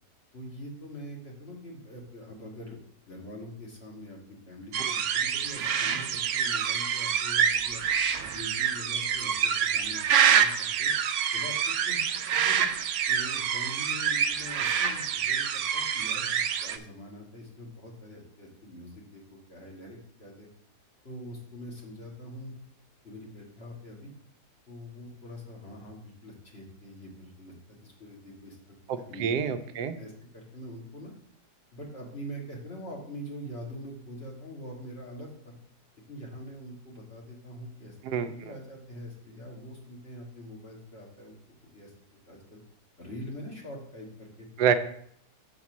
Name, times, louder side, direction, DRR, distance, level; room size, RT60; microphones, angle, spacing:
voice 1, 0.3-2.8 3.1-4.2 4.5-7.8 8.3-10.9 11.3-12.0 12.5-12.7 13.1-20.5 21.0-22.5 23.0-24.1 24.7-28.6 29.0-29.5 30.0-31.1 31.7-35.5 36.1-41.4 41.7-41.9 42.3-42.6 43.0-44.5, equal, 40° left, -2 dB, 1.8 m, -44 dB
sound 1, 4.7-16.8, right 8 dB, 70° right, 0.7 m, -27 dB
voice 2, 28.9-29.9 38.0-38.5 44.6-44.7, right 7 dB, 85° right, 9 dB, 1.2 m, -27 dB
6.8 x 4.2 x 6.1 m, 0.65 s
omnidirectional pair, 1.7 m